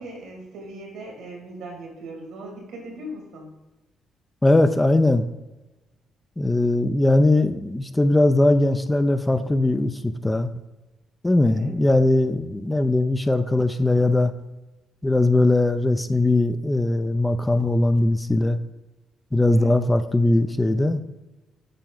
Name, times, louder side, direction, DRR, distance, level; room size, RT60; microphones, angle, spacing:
voice 1, 0.0-3.5 11.4-11.7 19.5-19.8, right 1 dB, 85° right, 0 dB, 2.3 m, -39 dB
voice 2, 4.4-5.3 6.4-10.5 11.2-14.3 15.0-18.6 19.3-21.0, left 2 dB, 15° left, 10 dB, 0.5 m, -20 dB
9.0 x 4.1 x 3.9 m, 1.1 s
cardioid pair, 90°, 0 cm